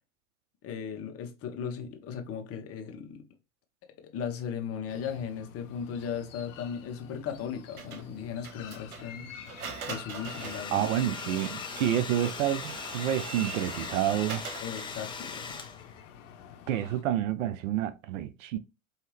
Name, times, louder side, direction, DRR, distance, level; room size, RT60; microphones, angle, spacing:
voice 1, 0.6-3.2 4.0-9.3 9.8-10.9 14.6-15.6, left 7 dB, 35° left, 1.0 m, -37 dB
sound 1, 4.9-17.0, left 8 dB, 60° left, 0.9 m, -47 dB
Printer, 7.8-15.0, right 6 dB, 85° right, 1.1 m, -43 dB
Domestic sounds home sounds, 10.0-16.0, left 5 dB, 10° left, 0.5 m, -40 dB
voice 2, 10.7-14.4 16.7-18.6, right 11 dB, 60° right, 0.6 m, -29 dB
4.7 x 2.8 x 3.1 m
hypercardioid pair, 95°, 43 cm